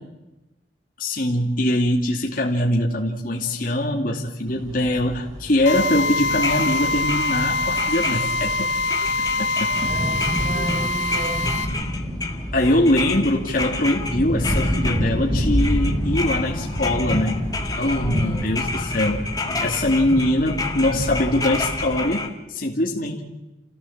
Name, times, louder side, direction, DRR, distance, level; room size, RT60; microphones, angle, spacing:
voice 1, 1.0-8.8 9.4-9.7 10.5-10.7 12.5-17.4 17.8-19.2 19.6-23.2, left 1 dB, 50° left, -1 dB, 2.5 m, -22 dB
sound 1, 4.5-22.0, equal, 20° right, 4.9 m, -28 dB
Drill, 5.7-11.7, left 2 dB, 90° left, 2.2 m, -24 dB
sound 2, 6.3-8.6 8.8-15.3 15.6-22.3, left 3 dB, 20° left, 1.8 m, -31 dB
voice 2, 9.8-11.4 17.8-18.4, right 1 dB, 50° right, 1 dB, 6.8 m, -34 dB
29.5 x 15.5 x 7.4 m, 1.0 s
head